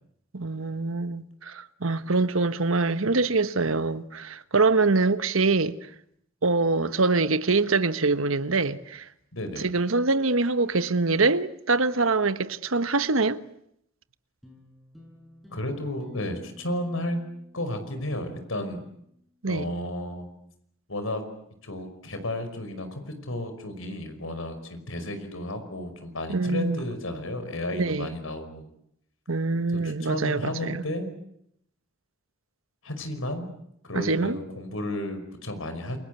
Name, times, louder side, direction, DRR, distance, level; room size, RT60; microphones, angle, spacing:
voice 1, 0.3-5.7 6.4-9.1 9.6-13.4 19.4-19.7 26.3-26.8 27.7-28.1 29.3-30.8 33.9-34.4, right 3 dB, 80° right, 1.3 m, -24 dB
voice 2, 9.3-9.7 15.5-17.2 17.5-18.8 19.5-20.3 20.9-21.2 21.6-28.7 29.7-31.1 32.8-33.5 33.8-36.0, left 1 dB, 80° left, 5.5 m, -33 dB
sound 1, 14.4-19.1, left 1 dB, ahead, 7.0 m, -53 dB
28.5 x 23.5 x 8.3 m
head